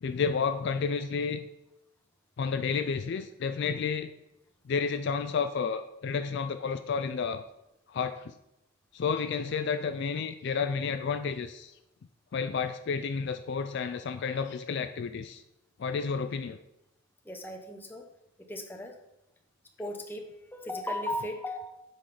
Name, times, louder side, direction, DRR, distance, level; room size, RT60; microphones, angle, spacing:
voice 1, 0.0-1.5 2.4-4.1 4.7-7.4 7.9-8.3 8.9-11.7 12.3-15.4 15.8-16.6, left 5 dB, 50° left, 9 dB, 0.3 m, -31 dB
voice 2, 17.2-18.0 18.5-19.0 19.8-21.8, left 1 dB, 10° left, 3 dB, 0.7 m, -36 dB
8.0 x 4.0 x 5.7 m, 0.89 s
head